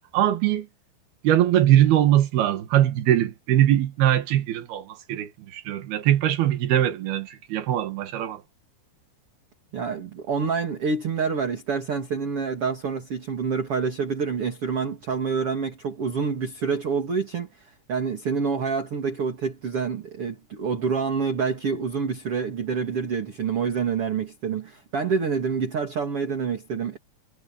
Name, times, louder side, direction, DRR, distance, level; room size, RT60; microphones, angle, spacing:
voice 1, 0.1-0.7 1.2-8.4, right 12 dB, 85° right, 3.7 m, -21 dB
voice 2, 9.7-27.0, right 5 dB, 40° right, 3.3 m, -27 dB
omnidirectional pair, 4.3 m